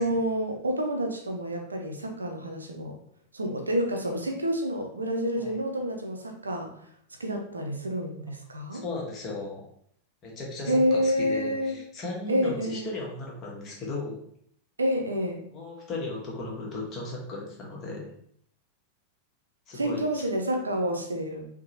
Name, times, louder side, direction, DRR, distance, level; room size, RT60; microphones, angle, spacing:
voice 1, 0.0-2.9 3.3-6.7 7.2-8.8 10.7-11.8 12.3-12.9 14.8-15.5 19.7-21.5, equal, 75° right, 2 dB, 0.4 m, -28 dB
voice 2, 8.7-9.7 10.2-14.2 15.5-18.1 19.7-20.2, left 3 dB, 30° left, -3 dB, 0.8 m, -36 dB
2.7 x 2.1 x 2.6 m, 0.66 s
figure-of-eight pair, 90°, 0 cm